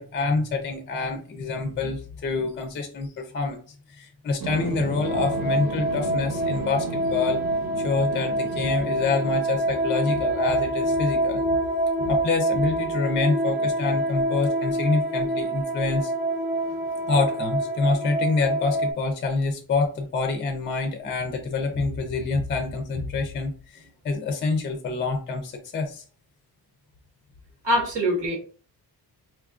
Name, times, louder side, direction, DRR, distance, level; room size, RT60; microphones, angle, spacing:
voice 1, 0.0-3.6 3.9-7.4 7.8-11.6 12.0-16.1 17.1-26.0, left 3 dB, 30° left, 5 dB, 0.4 m, -26 dB
sound 1, 4.4-9.8, right 3 dB, 60° right, 1.0 m, -35 dB
sound 2, 5.0-18.9, right 1 dB, 25° right, 0.4 m, -26 dB
voice 2, 27.6-28.4, equal, 90° right, -1 dB, 1.4 m, -23 dB
4.3 x 2.3 x 2.4 m, 0.40 s
wide cardioid pair, 155°, 40 cm